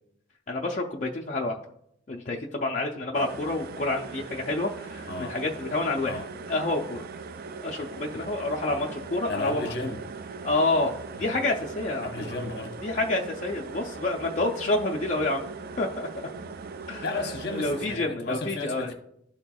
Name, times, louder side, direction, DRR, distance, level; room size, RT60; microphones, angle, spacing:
voice 1, 0.5-1.6 2.1-6.2 6.5-7.0 7.6-9.6 10.4-10.9 11.2-12.3 12.8-15.5 15.8-16.1 16.9-17.0 17.5-18.9, left 2 dB, 40° left, 0.5 m, -28 dB
sound 1, 3.1-18.0, right 4 dB, 55° right, 0.4 m, -40 dB
voice 2, 9.3-10.0 11.2-11.3 12.0-12.8 17.0-18.9, left 2 dB, 60° left, 0.9 m, -33 dB
12.0 x 4.3 x 2.3 m
head